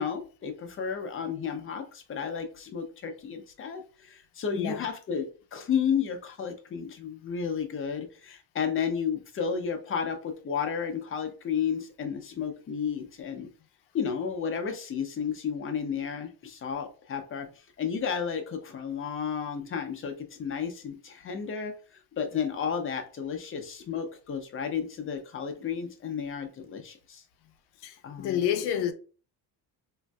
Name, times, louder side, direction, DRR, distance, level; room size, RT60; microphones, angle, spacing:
voice 1, 0.0-13.5 13.9-17.5 17.8-21.7 22.2-27.2 28.0-28.4, left 7 dB, 30° left, 0.6 m, -32 dB
voice 2, 4.5-4.9 27.8-28.9, left 10 dB, 80° left, 0.6 m, -29 dB
3.1 x 2.6 x 2.3 m
cardioid pair, 125°, 39 cm